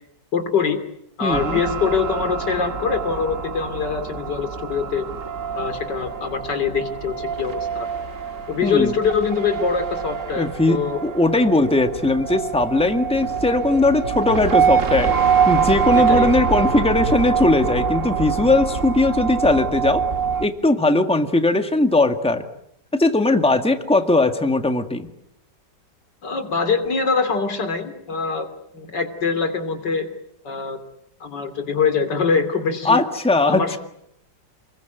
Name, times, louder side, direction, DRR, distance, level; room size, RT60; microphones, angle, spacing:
voice 1, 0.3-0.8 1.2-5.1 5.5-7.9 8.5-11.0 11.3-11.4 15.9-16.3 26.2-28.5 28.7-30.1 30.4-30.8 31.2-33.0 33.5-33.8, left 5 dB, 75° left, 9 dB, 3.5 m, -23 dB
voice 2, 1.2-1.6 8.6-8.9 10.4-15.1 15.4-20.0 20.4-22.4 22.9-25.1 32.8-33.8, left 2 dB, 5° left, 6 dB, 1.8 m, -19 dB
sound 1, 1.3-20.5, right 6 dB, 45° right, 2.0 m, -24 dB
29.0 x 21.5 x 9.3 m, 0.75 s
omnidirectional pair, 1.9 m